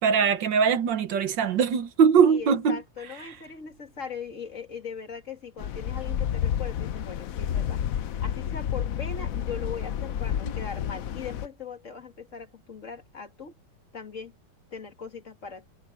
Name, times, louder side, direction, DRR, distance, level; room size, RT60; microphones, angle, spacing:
voice 1, 0.0-2.8, right 6 dB, 80° right, 1.9 m, -21 dB
voice 2, 2.2-7.8 8.2-13.5 13.9-14.3 14.7-15.7, left 6 dB, 45° left, 2.6 m, -40 dB
sound 1, 5.6-11.5, left 9 dB, 60° left, 1.0 m, -30 dB
omnidirectional pair, 1.9 m